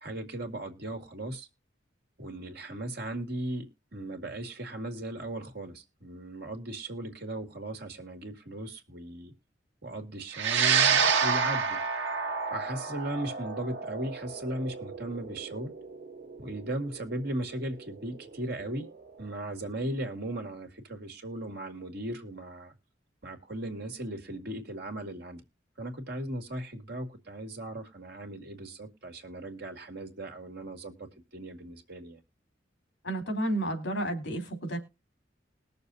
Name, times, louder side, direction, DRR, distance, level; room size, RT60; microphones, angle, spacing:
voice 1, 0.0-1.5 2.2-9.3 9.8-11.8 12.5-15.7 16.4-18.9 19.2-22.7 23.2-25.4 25.8-32.2, right 1 dB, 60° right, 2.2 m, -37 dB
sound 1, 10.3-18.9, right 6 dB, 75° right, 1.5 m, -29 dB
voice 2, 33.0-34.8, right 1 dB, 70° left, 3.3 m, -31 dB
20.5 x 6.9 x 2.7 m
head